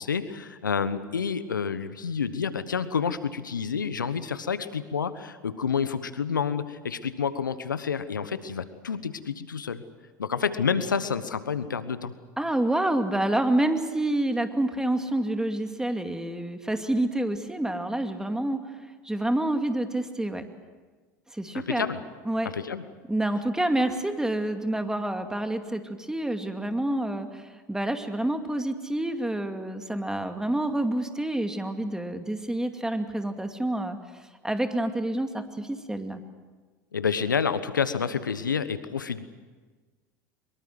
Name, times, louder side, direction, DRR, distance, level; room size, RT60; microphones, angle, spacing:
voice 1, 0.0-9.8 10.2-12.1 21.5-22.0 22.5-22.8 36.9-39.3, left 6 dB, 90° left, 13 dB, 1.1 m, -29 dB
voice 2, 12.4-18.8 19.0-20.4 21.3-21.9 22.3-22.5 23.1-36.2, right 1 dB, 5° right, 6 dB, 2.4 m, -28 dB
23.5 x 22.5 x 7.9 m, 1.4 s
hypercardioid pair, 80°, 10 cm